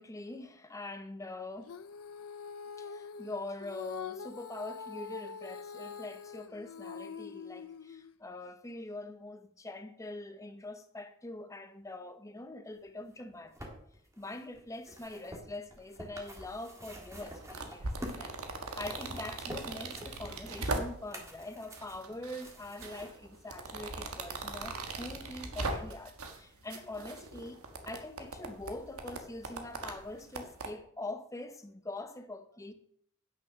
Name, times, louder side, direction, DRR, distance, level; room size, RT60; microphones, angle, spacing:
voice 1, 0.0-1.7 2.8-13.7 14.2-32.7, left 2 dB, 15° left, 0.8 m, -44 dB
Female singing, 1.6-8.2, left 6 dB, 85° left, 0.5 m, -44 dB
sound 1, 13.1-18.3 18.6-23.1 23.9-24.0, equal, 15° right, 1.7 m, -47 dB
sound 2, 17.2-21.2 21.7-22.4 22.8-26.4 26.7-30.7, right 3 dB, 85° right, 1.4 m, -40 dB
9.6 x 6.1 x 5.9 m
head